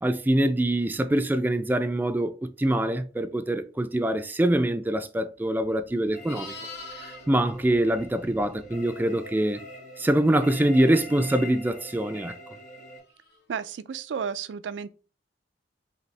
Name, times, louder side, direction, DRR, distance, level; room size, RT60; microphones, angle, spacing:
voice 1, 0.0-6.5 7.3-9.6 10.0-12.3, right 1 dB, 10° right, 0.3 m, -24 dB
Livestock farm animals working animals, 5.6-8.8 13.2-13.4, left 3 dB, 65° left, 1.7 m, -44 dB
sound 1, 6.1-13.0, equal, 45° left, 1.2 m, -44 dB
voice 2, 13.5-14.9, right 7 dB, 85° right, 0.4 m, -32 dB
5.0 x 2.7 x 3.3 m
head